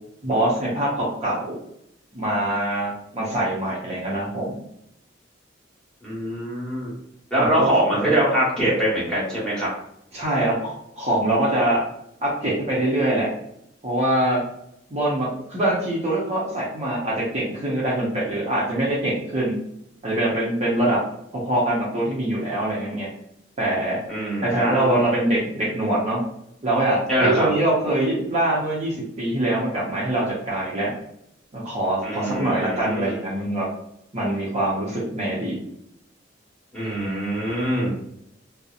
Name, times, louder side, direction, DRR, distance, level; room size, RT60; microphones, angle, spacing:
voice 1, 0.2-1.6 2.1-4.6 7.4-7.7 8.0-8.1 10.1-11.8 12.2-13.3 13.8-14.4 14.9-19.6 20.0-21.0 21.3-23.1 23.6-24.0 24.4-26.2 26.6-30.9 31.5-33.7 34.1-35.6, right 1 dB, 35° right, -6 dB, 0.6 m, -23 dB
voice 2, 6.0-6.9 7.3-9.7 24.1-24.9 27.1-27.5 32.0-33.2 36.7-37.9, right 1 dB, 5° left, -8 dB, 1.1 m, -23 dB
2.7 x 2.0 x 2.4 m, 0.75 s
head